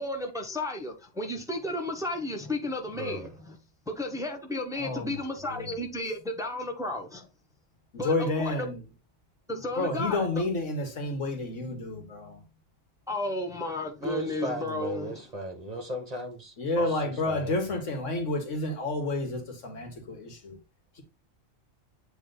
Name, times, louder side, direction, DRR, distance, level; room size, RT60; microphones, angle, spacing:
voice 1, 0.0-3.6 3.9-7.3 8.0-8.5 9.5-10.3 13.1-15.2 16.8-16.9, left 2 dB, 5° right, 0.6 m, -33 dB
voice 2, 2.9-3.3 14.0-17.8, right 1 dB, 30° right, 1.3 m, -37 dB
voice 3, 4.8-5.7 8.0-8.8 9.8-12.4 16.6-20.6, left 2 dB, 70° left, 1.6 m, -30 dB
7.9 x 3.1 x 3.8 m
omnidirectional pair, 1.4 m